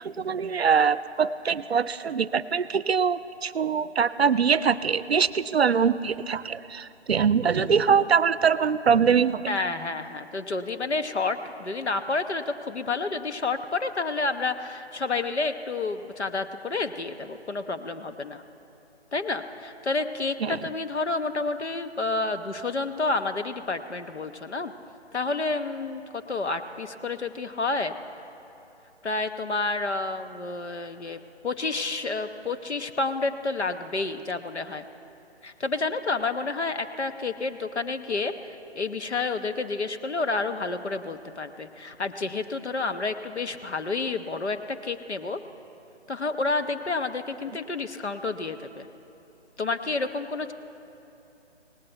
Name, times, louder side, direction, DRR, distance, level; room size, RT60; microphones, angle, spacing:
voice 1, 0.0-9.5 20.4-20.6, right 6 dB, 65° right, 17 dB, 0.5 m, -23 dB
voice 2, 9.5-18.4 19.1-24.7 25.1-27.9 29.0-34.8 35.4-45.4 46.1-48.9 49.6-50.5, left 3 dB, 75° left, 8 dB, 1.0 m, -30 dB
18.5 x 16.0 x 4.5 m, 2.9 s
figure-of-eight pair, 150°, 34 cm